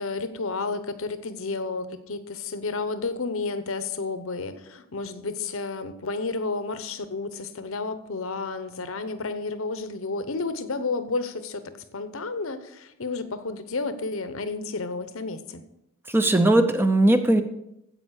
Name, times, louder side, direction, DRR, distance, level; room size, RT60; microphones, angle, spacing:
voice 1, 0.0-15.6, left 3 dB, 70° left, 11 dB, 1.0 m, -31 dB
voice 2, 16.1-17.4, right 1 dB, 10° right, 8 dB, 0.7 m, -19 dB
15.5 x 5.3 x 6.5 m, 0.82 s
head